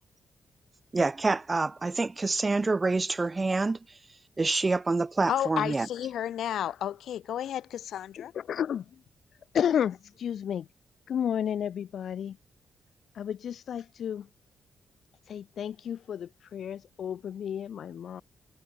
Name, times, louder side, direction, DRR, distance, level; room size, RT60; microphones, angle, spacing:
voice 1, 0.9-4.0 4.4-5.9, right 3 dB, 20° right, 0.7 m, -27 dB
voice 2, 5.3-8.3, left 10 dB, 85° left, 2.8 m, -32 dB
voice 3, 8.2-9.0 9.5-10.7 11.1-12.4 13.1-14.3 15.3-18.2, left 9 dB, 65° left, 4.5 m, -32 dB
cardioid pair, 130°, 0 cm